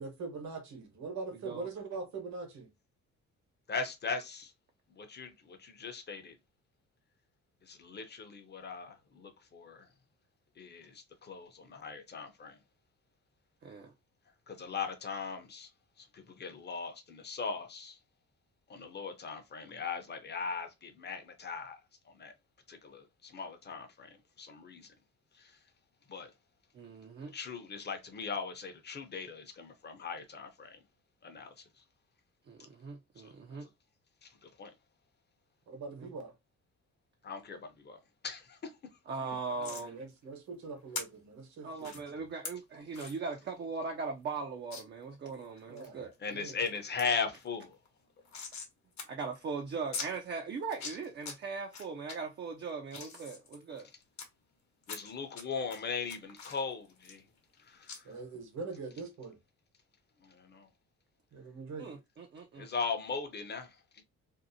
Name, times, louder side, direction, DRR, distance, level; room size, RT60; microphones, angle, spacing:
voice 1, 0.0-2.7 35.7-36.3 39.6-42.0 45.7-46.0 46.3-46.6 58.0-59.4 61.3-62.0, right 4 dB, 65° right, 1.1 m, -42 dB
voice 2, 3.7-4.5 4.9-6.4 7.6-9.9 10.6-12.6 14.5-15.7 16.0-18.0 18.7-21.8 22.1-22.3 22.7-24.1 24.4-24.9 25.3-25.6 26.1-26.3 27.3-30.8 31.2-31.6 33.2-33.3 34.2-34.7 37.2-38.7 43.0-43.1 46.2-47.8 48.3-48.4 54.9-57.2 57.6-58.1 60.2-60.7 62.6-64.0, left 5 dB, 35° left, 0.7 m, -39 dB
voice 3, 26.7-27.3 32.5-33.7 36.0-36.1 39.1-40.0 41.6-46.1 49.1-53.9 61.8-62.7, right 4 dB, 35° right, 0.5 m, -39 dB
sound 1, 39.6-39.9 40.9-41.0 41.8-42.0 42.4-42.5 42.9-43.2 43.6-43.7 43.9-44.0 44.7-44.8 45.3-45.9 46.3-46.7 47.0-47.1 47.4-48.7 49.0-49.1 49.3-49.4 49.9-50.1 50.6-51.3 51.7-52.1 52.6-54.3 54.8-55.4 55.7-57.6 57.9-58.0, left 5 dB, 65° left, 1.0 m, -42 dB
2.6 x 2.0 x 2.6 m
cardioid pair, 90°, 30 cm